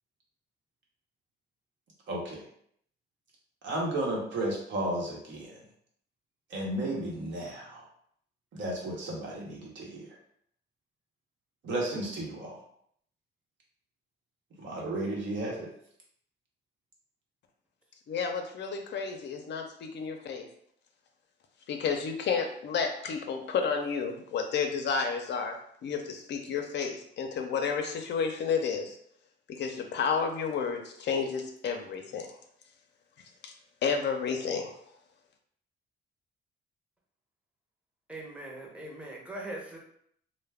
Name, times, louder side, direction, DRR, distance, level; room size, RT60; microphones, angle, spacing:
voice 1, 2.1-2.4 3.6-5.6 6.5-7.8 8.5-10.2 11.6-12.6 14.6-15.7, right 1 dB, 70° right, -2 dB, 0.9 m, -33 dB
voice 2, 18.1-20.5 21.7-25.6 25.8-29.0 29.5-32.3 33.4-33.5 33.8-34.8, left 6 dB, 60° left, 4 dB, 0.5 m, -31 dB
voice 3, 38.1-39.8, right 1 dB, 5° right, -2 dB, 0.7 m, -41 dB
2.2 x 2.1 x 3.3 m, 0.66 s
cardioid pair, 90°, 20 cm